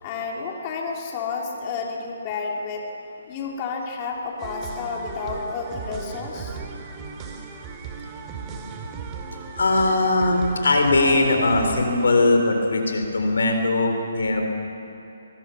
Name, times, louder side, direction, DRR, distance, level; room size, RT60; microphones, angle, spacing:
voice 1, 0.0-2.9 3.3-6.6, left 5 dB, 30° left, -1 dB, 3.1 m, -31 dB
sound 1, 4.4-12.1, right 5 dB, 25° right, 2.5 m, -36 dB
voice 2, 9.6-14.6, left 2 dB, 75° left, 4 dB, 4.1 m, -20 dB
23.0 x 20.5 x 7.0 m, 2.8 s
hypercardioid pair, 150°, 0 cm